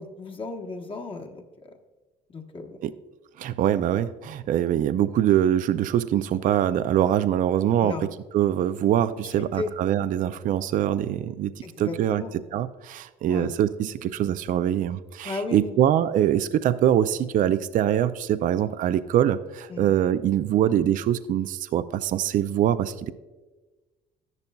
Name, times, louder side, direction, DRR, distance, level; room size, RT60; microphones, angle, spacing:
voice 1, 0.0-1.7 2.3-2.8 7.8-8.0 9.4-9.7 11.6-12.3 13.3-13.5 15.2-15.8 19.7-20.0, left 3 dB, 30° left, 3 dB, 1.0 m, -35 dB
voice 2, 3.4-23.1, right 11 dB, 50° right, 13 dB, 0.4 m, -24 dB
13.0 x 10.5 x 2.3 m, 1.2 s
cardioid pair, 110°, 17 cm